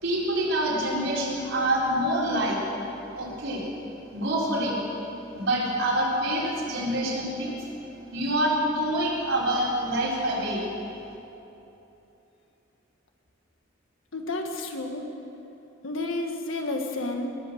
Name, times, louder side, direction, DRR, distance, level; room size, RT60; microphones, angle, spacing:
voice 1, 0.0-2.6 3.1-3.6 4.1-4.8 5.3-7.6 8.1-10.7, right 1 dB, 80° right, -5 dB, 3.8 m, -26 dB
voice 2, 14.1-15.1 15.8-17.4, left 2 dB, 85° left, 3 dB, 1.5 m, -31 dB
19.0 x 8.4 x 6.6 m, 3.0 s
head